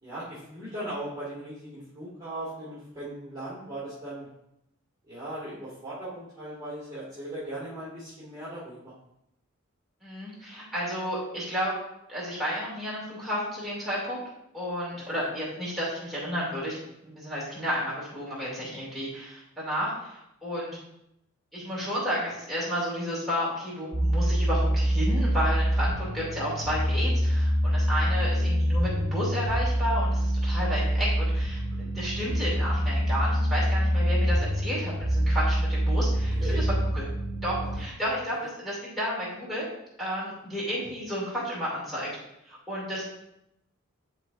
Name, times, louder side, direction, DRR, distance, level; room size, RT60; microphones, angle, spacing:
voice 1, 0.0-4.3 5.1-8.9 15.1-15.3 31.7-31.9 36.4-36.6 37.6-37.8 38.4-38.5, right 1 dB, 20° right, -10 dB, 1.9 m, -38 dB
voice 2, 10.0-11.7 12.1-14.2 14.5-16.8 17.0-20.8 21.5-31.6 31.9-37.0 37.4-38.4 38.6-39.7 40.0-42.1 42.5-43.1, equal, ahead, -8 dB, 2.4 m, -32 dB
sound 1, 23.9-37.8, equal, 40° right, 0.9 m, -25 dB
11.0 x 4.1 x 2.5 m, 0.81 s
head